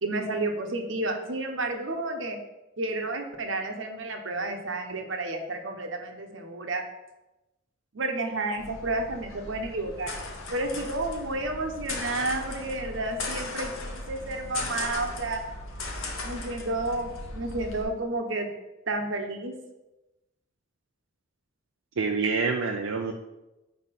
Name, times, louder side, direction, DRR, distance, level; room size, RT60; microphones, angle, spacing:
voice 1, 0.0-2.4 2.8-6.8 7.9-10.1 10.5-15.4 16.2-18.5 18.9-19.5, right 2 dB, 70° right, 4 dB, 1.0 m, -31 dB
sound 1, 8.6-17.8, left 2 dB, 90° left, 1.3 m, -37 dB
voice 2, 22.0-23.1, right 4 dB, 85° right, 2 dB, 0.5 m, -27 dB
5.7 x 4.7 x 5.8 m, 1.0 s
head